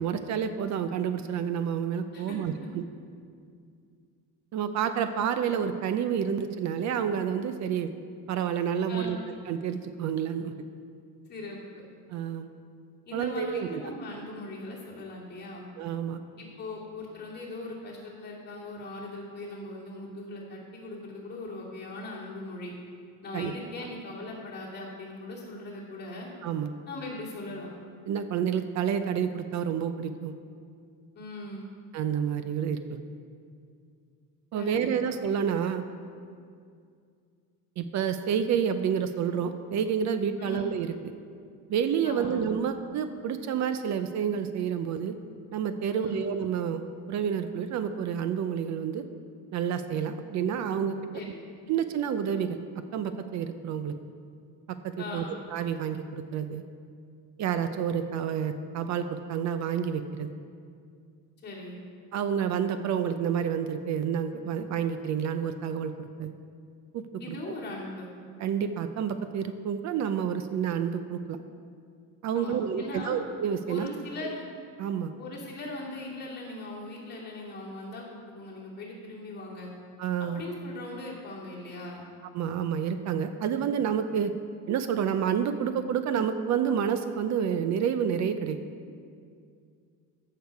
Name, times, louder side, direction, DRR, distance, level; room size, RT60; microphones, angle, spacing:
voice 1, 0.0-2.8 4.5-7.9 8.3-9.2 9.5-10.5 12.1-12.5 13.1-13.8 15.8-16.2 23.3-23.5 26.4-26.7 28.1-30.3 31.9-33.0 34.5-35.8 37.8-40.9 41.7-45.1 45.5-46.8 47.1-49.0 49.5-51.0 51.7-52.6 52.9-53.9 54.8-55.3 55.5-56.6 57.4-60.3 62.1-66.3 66.9-67.4 68.4-71.4 72.2-73.9 74.2-74.3 74.8-75.1 80.0-80.4 82.3-84.3 84.7-88.6, right 8 dB, 55° right, 9 dB, 0.6 m, -29 dB
voice 2, 8.9-9.2 11.3-11.8 13.1-15.7 16.4-22.7 23.2-26.3 26.9-27.7 31.1-31.7 34.5-34.9 40.4-40.7 42.0-42.4 45.9-46.3 51.1-51.5 55.0-55.4 61.4-61.8 67.2-68.1 72.3-73.2 73.7-74.4 75.2-79.7 80.3-82.1, left 2 dB, 30° left, -5 dB, 2.6 m, -40 dB
14.5 x 6.7 x 4.7 m, 2.2 s
cardioid pair, 160°, 34 cm